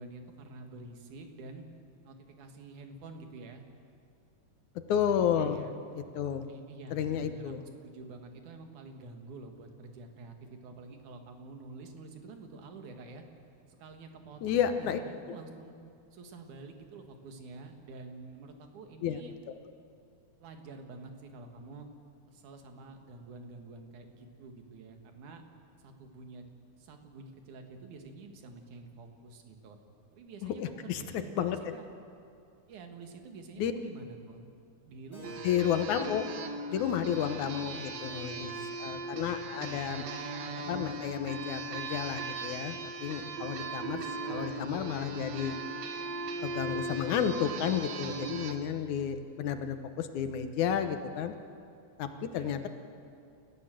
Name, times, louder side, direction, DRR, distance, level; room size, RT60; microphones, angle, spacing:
voice 1, 0.0-1.7 2.0-3.6 5.1-5.7 6.2-7.5 7.8-13.2 13.7-15.8 16.1-19.4 20.4-21.9 22.3-25.4 25.8-26.4 26.8-29.8 30.1-31.8 32.7-34.5 34.8-35.4 37.3-38.7 39.6-40.0 52.1-52.7, right 3 dB, 80° right, 5 dB, 3.2 m, -48 dB
voice 2, 4.9-5.6 5.9-6.4 6.9-7.6 14.4-15.0 19.0-19.2 30.4-31.6 33.6-33.7 35.4-36.2 36.7-38.5 38.8-40.1 40.6-45.5 46.4-51.3 52.0-52.7, left 8 dB, 80° left, 8 dB, 2.5 m, -32 dB
Keyboard (musical), 35.1-40.2, right 1 dB, 10° left, 7.3 m, -53 dB
sound 1, 35.2-48.5, right 3 dB, 65° right, 2.4 m, -38 dB
29.5 x 14.5 x 7.7 m, 2.4 s
omnidirectional pair, 3.4 m